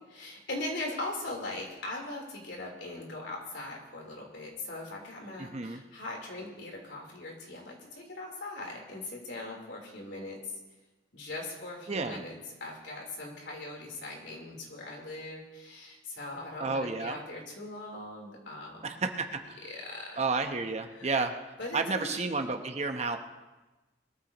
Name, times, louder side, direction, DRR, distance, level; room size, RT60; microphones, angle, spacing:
voice 1, 0.1-10.4 11.1-18.9 19.6-20.2 20.9-21.1 21.6-22.2, left 2 dB, 75° left, -1 dB, 3.6 m, -40 dB
voice 2, 5.4-5.8 11.9-12.2 16.6-17.2 18.8-19.6 20.2-21.4 21.7-23.2, right 4 dB, 40° right, 6 dB, 0.9 m, -31 dB
21.5 x 14.0 x 3.0 m, 1.1 s
head